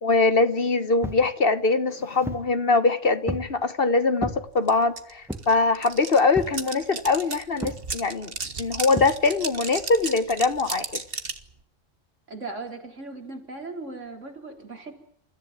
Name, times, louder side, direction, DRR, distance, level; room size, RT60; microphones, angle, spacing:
voice 1, 0.0-8.3 8.6-11.0, left 3 dB, 50° left, 1.4 m, -22 dB
sound 1, 1.0-1.3 1.9-2.5 3.3-3.6 4.2-4.4 5.3-5.6 6.4-6.6 7.6-7.9 9.0-9.2, right 1 dB, ahead, 2.0 m, -33 dB
sound 2, 4.7-4.8 5.0-11.4, right 4 dB, 50° right, 1.8 m, -34 dB
voice 2, 12.3-14.9, right 3 dB, 75° right, 4.4 m, -38 dB
29.0 x 14.0 x 9.6 m
omnidirectional pair, 1.3 m